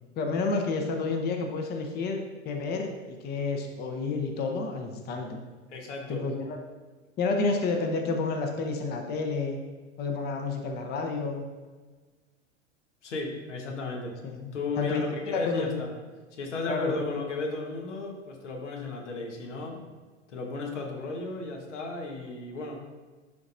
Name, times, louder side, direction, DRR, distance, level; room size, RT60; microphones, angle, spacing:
voice 1, 0.2-5.4 6.1-6.6 7.2-9.6 10.0-11.5 14.2-15.8 16.7-16.9 19.7-19.8, left 3 dB, 25° left, 3 dB, 0.8 m, -30 dB
voice 2, 5.7-6.2 13.0-14.1 14.5-15.9 16.3-19.7 20.3-22.8, left 3 dB, 70° left, 1 dB, 1.4 m, -34 dB
10.5 x 4.0 x 2.6 m, 1.3 s
figure-of-eight pair, 90°, 37 cm